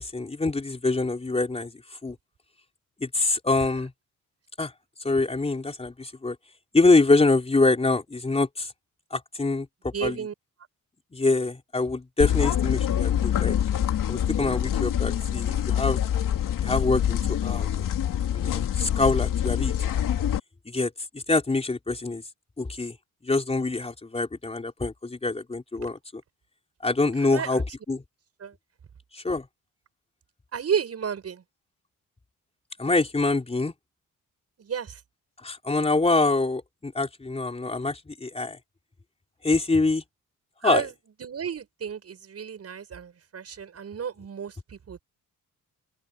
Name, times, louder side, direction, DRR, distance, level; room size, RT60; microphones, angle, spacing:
voice 1, 0.0-1.7 2.0-2.1 3.0-3.9 4.6-4.7 5.0-6.4 6.7-8.7 9.1-10.2 11.1-13.5 14.1-16.0 16.6-17.9 18.3-19.9 20.7-22.2 22.6-22.9 23.2-26.0 26.8-28.0 29.1-29.5 32.8-33.7 35.4-38.6 39.4-40.0 40.6-40.8, left 3 dB, 20° left, 4.3 m, -25 dB
voice 2, 9.9-10.3 27.2-27.6 28.4-28.6 30.5-31.4 34.6-35.0 40.6-40.9 41.2-45.0, right 7 dB, 50° right, 7.8 m, -32 dB
sound 1, 12.2-20.4, left 10 dB, 75° left, 2.8 m, -25 dB
open air
cardioid pair, 130°, 33 cm